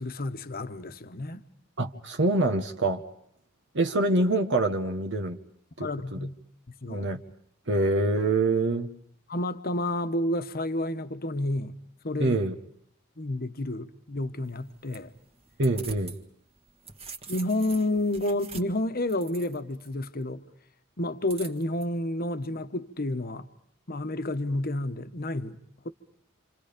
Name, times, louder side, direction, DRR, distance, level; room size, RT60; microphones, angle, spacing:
voice 1, 0.0-1.5 5.8-6.4 6.7-7.1 9.3-11.8 12.0-12.4 13.2-15.1 17.3-20.4 21.0-23.5 23.9-25.6 25.8-25.9, left 1 dB, 45° left, 1.2 m, -30 dB
voice 2, 1.8-3.0 3.7-5.4 5.8-6.2 6.9-7.2 7.7-8.9 12.2-12.5 15.6-16.2, right 2 dB, 55° right, 1.4 m, -25 dB
sound 1, 14.4-16.2 16.6-19.9 21.3-21.8, right 4 dB, 30° right, 1.7 m, -45 dB
28.0 x 27.5 x 5.2 m
head